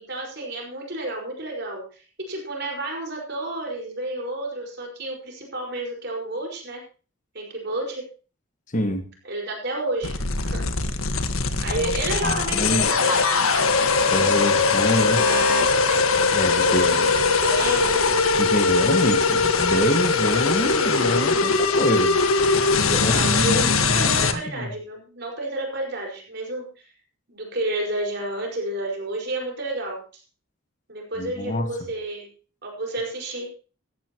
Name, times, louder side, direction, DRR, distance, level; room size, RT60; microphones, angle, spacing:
voice 1, 0.0-1.8 2.2-6.8 7.3-8.1 9.2-10.6 11.6-13.7 14.1-14.7 14.9-16.0 16.6-18.0 23.0-26.7 27.3-30.0 30.9-32.3 32.6-33.5, right 2 dB, 50° right, 1 dB, 5.2 m, -30 dB
voice 2, 8.7-9.1 11.8-11.9 12.2-12.9 14.1-15.3 16.3-17.1 18.4-22.2 22.8-24.7 31.2-31.7, left 1 dB, 35° left, 7 dB, 1.5 m, -26 dB
sound 1, 10.0-24.3, left 4 dB, 75° left, 1.6 m, -21 dB
16.0 x 14.5 x 3.0 m, 0.36 s
head